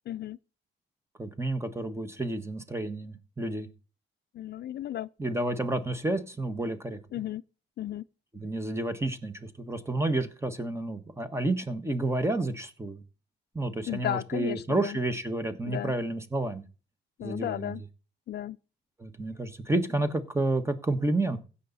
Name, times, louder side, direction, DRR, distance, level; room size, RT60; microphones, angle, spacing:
voice 1, 0.1-0.4 4.3-5.1 7.1-7.4 7.8-8.0 13.9-15.0 15.7-15.9 17.2-17.8 18.3-18.6, left 12 dB, 55° left, 0.4 m, -34 dB
voice 2, 1.2-3.7 5.2-7.0 8.3-13.0 13.5-16.7 17.2-17.7 19.0-21.4, right 2 dB, 15° right, 1.5 m, -30 dB
16.0 x 5.6 x 4.1 m
cardioid pair, 90°, 20 cm